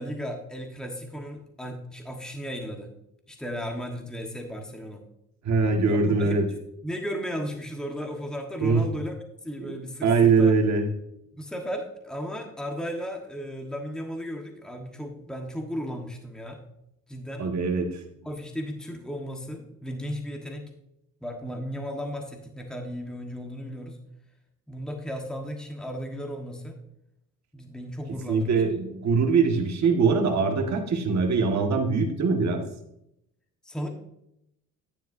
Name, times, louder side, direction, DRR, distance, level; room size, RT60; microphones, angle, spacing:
voice 1, 0.0-2.9 3.3-5.0 5.9-6.4 6.8-9.2 9.4-10.5 11.3-16.6 17.1-17.5 18.2-20.7 21.2-24.0 24.7-26.8 27.5-28.6 33.6-33.9, equal, ahead, 2 dB, 1.3 m, -35 dB
voice 2, 5.4-6.4 8.6-8.8 9.6-9.7 10.0-10.9 17.4-18.0 28.3-32.6, right 4 dB, 55° right, 2 dB, 1.7 m, -22 dB
10.5 x 9.1 x 2.7 m, 0.80 s
cardioid pair, 100°, 32 cm